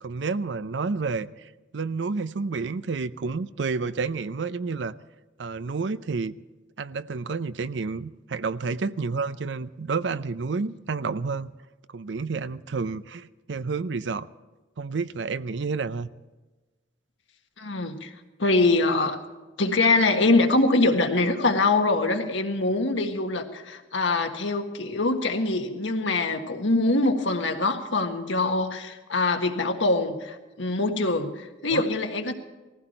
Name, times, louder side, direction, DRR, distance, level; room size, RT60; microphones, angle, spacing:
voice 1, 0.0-4.9 5.4-6.3 6.8-11.5 11.9-14.3 14.8-16.1 31.7-31.8, right 4 dB, 65° right, 0.6 m, -30 dB
voice 2, 17.6-18.1 18.4-19.2 19.6-32.3, left 2 dB, 75° left, 1.6 m, -24 dB
19.5 x 15.5 x 4.4 m
head